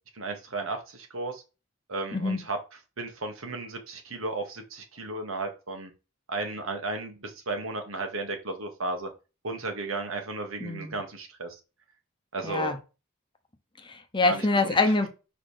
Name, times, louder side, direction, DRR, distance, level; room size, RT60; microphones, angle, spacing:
voice 1, 0.1-1.4 1.9-2.6 3.0-5.9 6.3-9.1 9.4-11.6 12.3-12.7 14.2-14.8, right 3 dB, 80° right, 1.6 m, -34 dB
voice 2, 10.6-11.0 12.4-12.8 13.8-15.1, left 3 dB, 25° left, 0.9 m, -25 dB
5.0 x 4.2 x 4.9 m
head